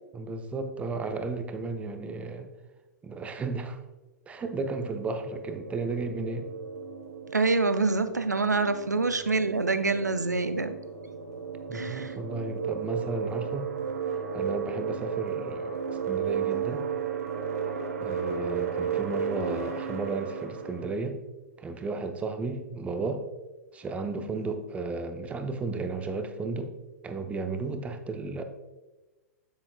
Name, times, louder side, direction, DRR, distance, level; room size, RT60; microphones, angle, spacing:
voice 1, 0.1-2.5 3.0-3.8 4.3-6.5 11.7-13.7 14.3-16.8 18.0-21.2 21.6-23.3 23.7-26.7 27.0-28.4, right 3 dB, 15° right, 7 dB, 0.6 m, -34 dB
sound 1, 4.4-20.9, right 6 dB, 60° right, 1.0 m, -34 dB
voice 2, 7.3-10.8 11.7-12.2, right 3 dB, 85° right, 10 dB, 0.5 m, -26 dB
9.1 x 7.9 x 2.2 m, 1.2 s
figure-of-eight pair, 105°, 9 cm